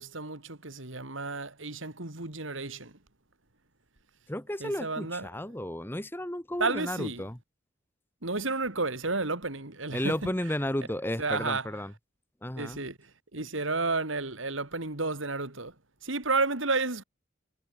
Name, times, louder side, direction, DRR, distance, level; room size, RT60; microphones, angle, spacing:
voice 1, 0.0-3.0 4.6-5.4 6.6-7.2 8.2-10.3 11.2-11.7 12.6-15.7 16.0-17.0, right 3 dB, 75° right, 3.1 m, -32 dB
voice 2, 4.3-7.4 9.9-11.9 12.4-12.8, left 1 dB, 10° left, 1.7 m, -33 dB
head